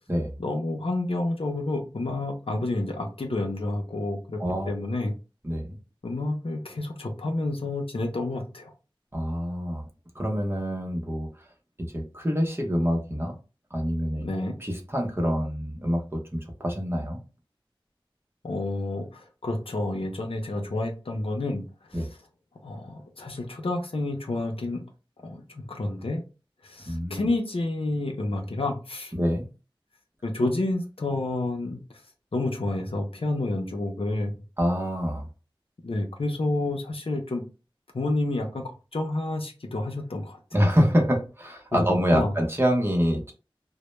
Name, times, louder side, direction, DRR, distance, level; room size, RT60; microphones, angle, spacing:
voice 1, 0.4-4.4 4.7-5.1 6.0-8.7 14.2-14.5 18.4-21.6 21.9-22.1 22.6-24.8 25.2-26.2 26.6-29.1 30.2-31.8 32.3-34.3 35.8-37.4 37.9-40.4 41.7-42.3, left 2 dB, 80° left, 2 dB, 0.5 m, -29 dB
voice 2, 4.4-4.7 5.4-5.8 9.1-9.8 10.1-11.3 11.9-13.3 13.7-14.3 14.6-17.2 21.9-22.1 26.9-27.3 29.1-29.5 34.6-35.3 40.5-43.3, equal, 25° right, 2 dB, 0.7 m, -26 dB
2.1 x 2.0 x 3.0 m, 0.32 s
wide cardioid pair, 40°, 9 cm